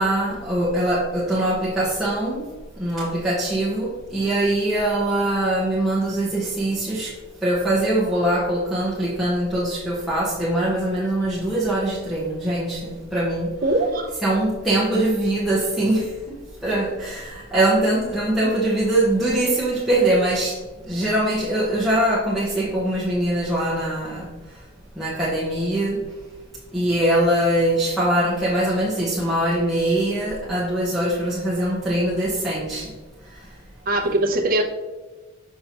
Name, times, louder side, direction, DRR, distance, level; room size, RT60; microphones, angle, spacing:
voice 1, 0.0-2.5 2.8-7.1 7.4-13.5 14.2-16.4 16.6-20.5 20.9-24.3 25.0-26.0 26.7-32.9, right 1 dB, ahead, -9 dB, 0.9 m, -22 dB
voice 2, 13.6-14.1 33.9-34.6, right 1 dB, 40° right, 4 dB, 0.7 m, -21 dB
6.5 x 5.7 x 2.9 m, 1.2 s
head